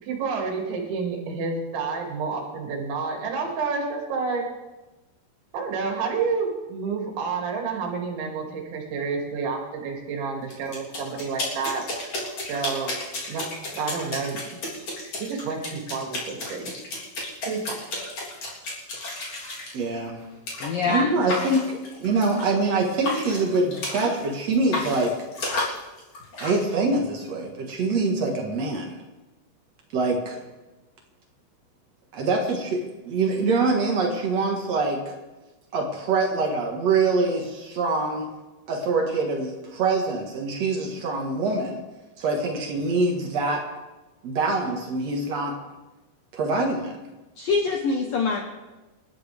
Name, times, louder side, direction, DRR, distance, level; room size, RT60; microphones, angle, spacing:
voice 1, 0.0-4.4 5.5-11.8 12.5-12.9 13.3-13.4 13.7-14.4 15.2-16.7 17.5-17.9, right 5 dB, 65° right, 0 dB, 4.7 m, -29 dB
sound 1, 10.5-19.7 20.5-20.7 21.3-22.7 23.0-24.3 24.5-26.6, left 2 dB, 35° left, 3.9 m, -32 dB
voice 2, 19.7-20.2 20.9-25.1 26.4-29.0 29.9-30.4 32.1-35.1 35.7-38.3 38.7-41.8 42.2-43.6 44.2-45.6 46.3-46.9, right 3 dB, 90° right, 0 dB, 1.4 m, -24 dB
voice 3, 20.6-21.1 47.4-48.4, left 4 dB, 75° left, 2 dB, 2.1 m, -24 dB
27.5 x 12.5 x 3.5 m, 1.1 s
omnidirectional pair, 5.7 m